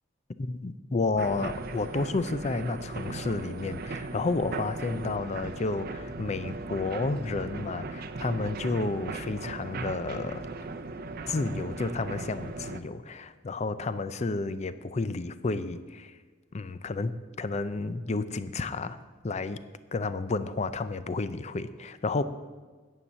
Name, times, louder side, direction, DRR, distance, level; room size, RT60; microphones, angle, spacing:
voice 1, 0.4-10.4 11.3-16.1 16.5-19.0 19.2-19.6 19.9-22.2, left 3 dB, 35° left, 13 dB, 0.4 m, -31 dB
sound 1, 1.2-12.8, right 3 dB, 50° right, 0.6 m, -38 dB
9.5 x 5.6 x 7.3 m, 1.4 s
head